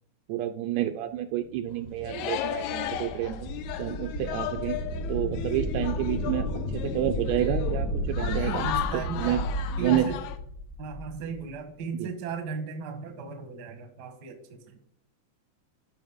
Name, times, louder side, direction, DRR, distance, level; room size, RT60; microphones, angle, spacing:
voice 1, 0.3-3.5 3.8-4.8 5.1-6.5 6.7-8.7 9.2-9.4 9.8-10.1 12.0-12.1, right 12 dB, 80° right, 8 dB, 1.7 m, -29 dB
sound 1, 1.4-11.5, left 1 dB, 65° left, 1.0 m, -33 dB
sound 2, 1.7-1.8 2.0-10.4, left 11 dB, 85° left, 2.0 m, -35 dB
voice 2, 8.2-9.4 9.8-10.2 10.8-14.8, right 6 dB, 55° right, 6 dB, 1.2 m, -36 dB
12.5 x 5.2 x 3.5 m, 0.66 s
omnidirectional pair, 3.3 m